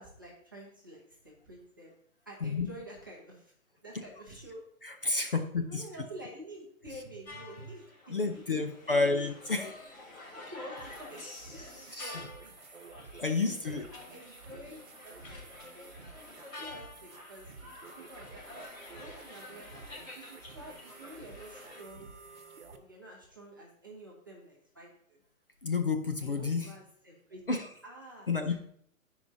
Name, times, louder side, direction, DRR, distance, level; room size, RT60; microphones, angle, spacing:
voice 1, 0.0-1.9 2.3-3.5 3.8-4.6 5.3-5.4 5.7-9.2 10.4-11.2 11.5-12.5 13.4-16.0 16.3-17.5 18.0-18.7 19.0-22.1 22.7-25.2 26.2-27.5 27.8-28.5, right 1 dB, 15° right, -4 dB, 0.7 m, -49 dB
voice 2, 4.8-5.9 8.1-10.1 11.9-12.2 13.2-13.8 25.6-26.7 27.5-27.7 28.3-28.5, left 3 dB, 40° left, 5 dB, 0.5 m, -30 dB
sound 1, 7.2-21.8, left 2 dB, 70° left, 3.0 m, -49 dB
sound 2, 10.8-22.8, right 4 dB, 55° right, 1.1 m, -52 dB
14.5 x 4.9 x 2.6 m, 0.64 s
hypercardioid pair, 180°, 42 cm